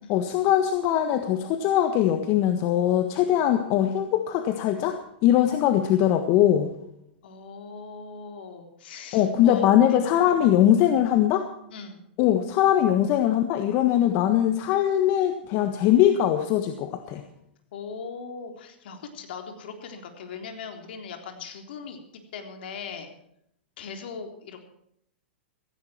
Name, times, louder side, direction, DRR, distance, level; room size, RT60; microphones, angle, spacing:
voice 1, 0.1-6.7 9.1-11.5 12.2-17.2, left 11 dB, 45° left, 7 dB, 1.4 m, -21 dB
voice 2, 7.2-10.4 11.7-12.0 17.7-22.0 22.3-23.1 23.8-24.6, left 5 dB, 65° left, 4 dB, 3.7 m, -40 dB
16.5 x 15.5 x 4.5 m, 0.74 s
hypercardioid pair, 115°, 6 cm